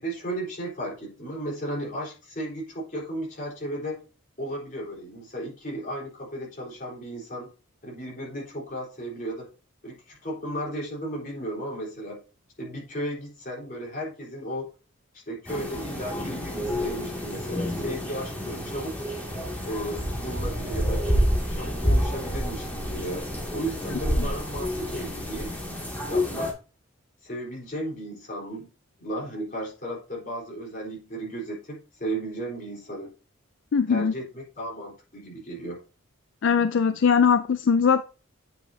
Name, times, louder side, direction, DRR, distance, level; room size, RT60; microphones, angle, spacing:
voice 1, 0.0-4.0 4.4-7.5 7.8-9.5 9.8-12.2 12.6-14.7 15.1-19.0 19.6-21.1 21.5-25.5 26.1-26.5 27.2-28.7 29.0-33.1 33.9-35.8, right 1 dB, 40° left, 4.2 m, -34 dB
sound 1, 15.4-26.5, equal, 10° left, 2.3 m, -28 dB
voice 2, 33.7-34.1 36.4-38.0, left 6 dB, 65° left, 0.4 m, -21 dB
9.3 x 6.8 x 2.8 m
head